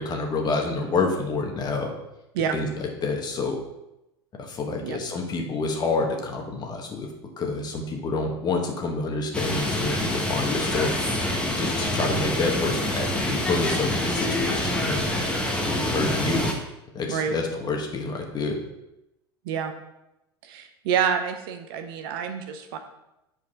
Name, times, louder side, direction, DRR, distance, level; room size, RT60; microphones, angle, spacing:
voice 1, 0.0-1.9 2.5-3.6 4.4-7.1 7.4-10.9 11.5-15.0 15.7-16.5 16.9-18.6, left 3 dB, 30° left, 2 dB, 1.5 m, -28 dB
sound 1, 9.3-16.5, left 1 dB, 10° left, 1.3 m, -26 dB
voice 2, 20.4-22.8, right 7 dB, 60° right, 7 dB, 0.8 m, -27 dB
8.6 x 4.7 x 3.7 m, 0.89 s
figure-of-eight pair, 85°, 14 cm